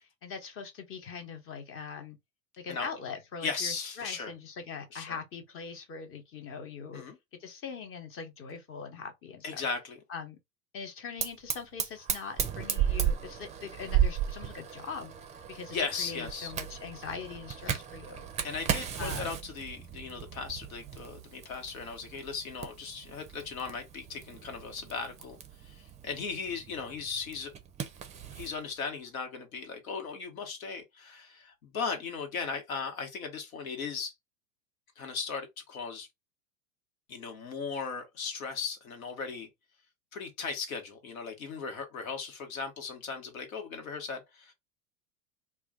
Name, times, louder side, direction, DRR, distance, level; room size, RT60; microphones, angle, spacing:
voice 1, 0.0-2.2 2.6-7.0 7.4-9.7 10.1-10.4 10.7-15.1 15.5-18.3 19.0-19.4, left 5 dB, 30° left, 0.9 m, -42 dB
voice 2, 3.4-4.3 4.9-5.2 6.9-7.2 9.4-10.0 15.7-16.5 18.4-25.4 25.7-27.5 28.3-34.1 35.0-36.1 37.1-39.5 40.1-44.5, left 5 dB, 75° left, 1.2 m, -37 dB
Fire, 11.2-28.5, right 9 dB, 15° right, 0.5 m, -35 dB
2.4 x 2.3 x 3.7 m
hypercardioid pair, 95°, 42 cm